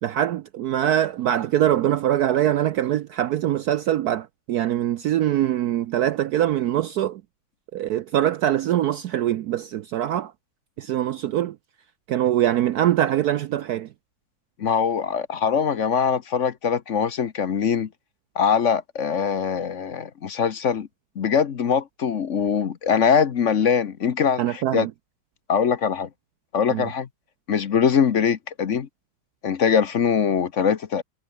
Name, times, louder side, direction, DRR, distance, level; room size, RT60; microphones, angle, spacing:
voice 1, 0.0-7.2 7.7-10.3 10.8-11.6 12.1-13.9 24.4-24.9 26.7-26.9, right 12 dB, 75° right, 0.9 m, -23 dB
voice 2, 14.6-17.9 18.3-20.9 21.2-24.9 25.5-26.1 26.5-27.1 27.5-28.9 29.4-31.0, left 7 dB, 45° left, 1.1 m, -22 dB
omnidirectional pair, 2.2 m